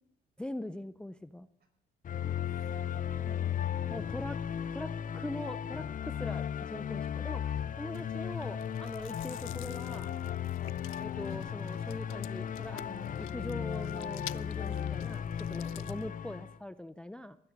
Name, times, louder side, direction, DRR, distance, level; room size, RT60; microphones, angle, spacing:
voice 1, 0.4-1.5 3.9-4.4 4.7-10.1 11.0-17.4, left 1 dB, 5° left, 14 dB, 0.4 m, -42 dB
sound 1, 2.0-16.6, left 9 dB, 45° left, 0.6 m, -36 dB
voice 2, 2.4-4.1 17.2-17.3, right 3 dB, 55° right, 2 dB, 5.4 m, -55 dB
Chewing mastication, 7.9-16.1, left 14 dB, 85° left, 0.5 m, -45 dB
20.0 x 9.8 x 5.2 m, 0.80 s
cardioid pair, 90°, 20 cm